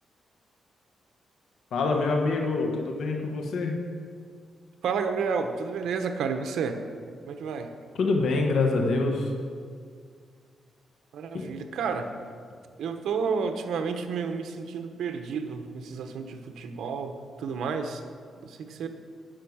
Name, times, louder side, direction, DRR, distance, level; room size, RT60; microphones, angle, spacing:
voice 1, 1.7-3.8 7.9-9.3 11.3-11.5, left 3 dB, 75° left, 2 dB, 1.4 m, -25 dB
voice 2, 4.8-6.8 7.3-7.7 11.1-12.1 12.8-18.0 18.4-18.9, right 5 dB, 85° right, 7 dB, 1.0 m, -31 dB
10.5 x 6.5 x 8.6 m, 2.1 s
cardioid pair, 120°, 0 cm